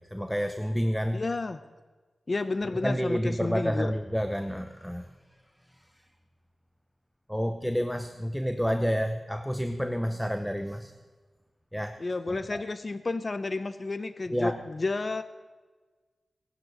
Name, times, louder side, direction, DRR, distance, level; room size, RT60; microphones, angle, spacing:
voice 1, 0.0-1.2 2.8-5.1 7.3-10.9 11.7-12.0 12.3-12.6 14.3-14.6, equal, ahead, 9 dB, 0.7 m, -29 dB
voice 2, 1.1-1.6 2.3-3.9 12.0-15.2, left 3 dB, 35° left, 12 dB, 0.6 m, -31 dB
18.5 x 10.5 x 6.4 m, 1.4 s
wide cardioid pair, 120°, 0 cm